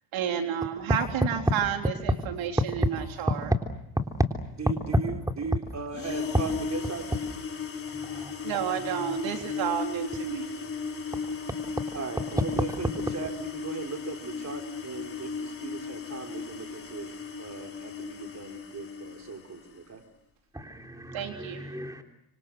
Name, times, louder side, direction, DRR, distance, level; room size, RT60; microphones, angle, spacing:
voice 1, 0.1-3.5 8.4-10.7 21.1-21.6, right 8 dB, 70° right, 4 dB, 3.8 m, -31 dB
voice 2, 4.6-7.1 11.9-17.1 17.4-20.0, right 5 dB, 30° right, 4 dB, 4.4 m, -38 dB
sound 1, 5.9-19.8, left 5 dB, 25° left, 3.7 m, -36 dB
voice 3, 8.0-8.4 20.5-22.0, equal, 5° right, 4 dB, 3.4 m, -34 dB
26.5 x 24.5 x 7.8 m, 0.79 s
cardioid pair, 100°, 49 cm